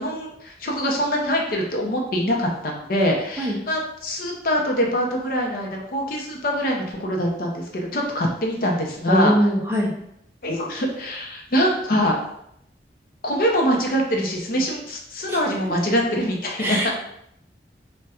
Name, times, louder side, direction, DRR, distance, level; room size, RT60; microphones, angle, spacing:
voice 1, 0.0-9.3 10.4-12.1 13.2-16.8, equal, 55° left, 0 dB, 0.6 m, -24 dB
voice 2, 9.1-9.9 15.3-15.4 16.6-17.0, equal, 15° right, -2 dB, 0.4 m, -21 dB
4.1 x 2.2 x 2.4 m, 0.75 s
head